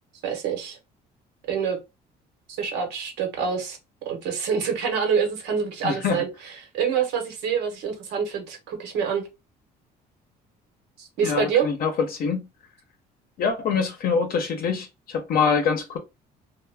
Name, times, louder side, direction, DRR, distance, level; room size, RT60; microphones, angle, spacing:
voice 1, 0.2-0.8 1.5-1.8 2.6-3.8 4.0-6.3 6.7-9.2 11.0-11.7, right 6 dB, 85° right, 0.9 m, -26 dB
voice 2, 5.8-6.2 11.2-12.4 13.4-16.0, left 5 dB, 60° left, 0.6 m, -24 dB
2.3 x 2.1 x 3.3 m
cardioid pair, 110°, 17 cm